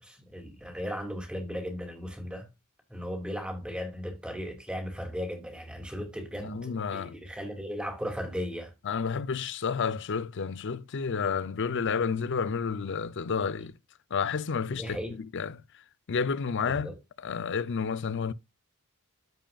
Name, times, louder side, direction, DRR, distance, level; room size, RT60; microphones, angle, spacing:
voice 1, 0.0-2.5 2.9-8.7 14.7-15.2 16.6-16.9, equal, 5° right, 2.4 m, -36 dB
voice 2, 6.4-7.1 8.8-13.7 14.1-15.6 16.1-16.9 17.2-18.3, left 5 dB, 55° left, 0.6 m, -30 dB
14.0 x 5.1 x 2.4 m
head